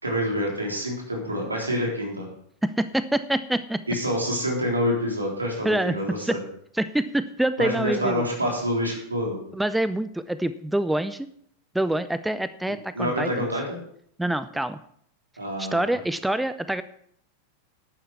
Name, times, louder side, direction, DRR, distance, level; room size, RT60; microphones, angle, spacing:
voice 1, 0.0-2.3 3.9-6.4 7.6-9.4 12.9-13.8 15.4-15.9, equal, 80° right, -1 dB, 3.6 m, -27 dB
voice 2, 2.6-3.8 5.6-6.4 6.7-8.2 9.5-11.3 11.7-13.5 14.2-14.8 15.6-16.8, right 1 dB, 5° right, 13 dB, 0.5 m, -26 dB
11.5 x 8.9 x 4.7 m, 0.66 s
figure-of-eight pair, 90°, 0 cm